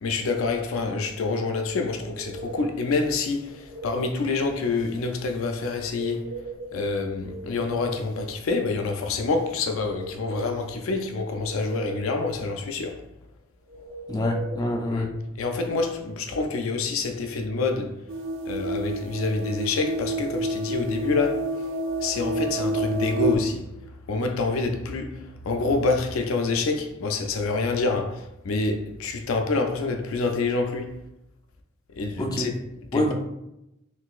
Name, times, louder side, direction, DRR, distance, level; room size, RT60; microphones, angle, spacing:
voice 1, 0.0-6.3 6.7-13.0 14.9-15.1 15.4-18.0 18.5-21.5 22.0-23.6 24.1-31.0 32.0-32.5 32.9-33.1, left 3 dB, 75° left, 0.4 m, -27 dB
sound 1, 1.9-2.8 3.3-4.1 5.7-6.7 7.1-8.2 9.6-10.6 11.1-12.1 13.7-14.7, right 3 dB, 45° right, 1.3 m, -39 dB
voice 2, 14.1-15.1 32.2-32.5 32.9-33.1, left 1 dB, 20° left, 0.4 m, -25 dB
sound 2, 18.1-23.4, right 1 dB, 65° right, 0.4 m, -29 dB
3.8 x 2.5 x 2.4 m
head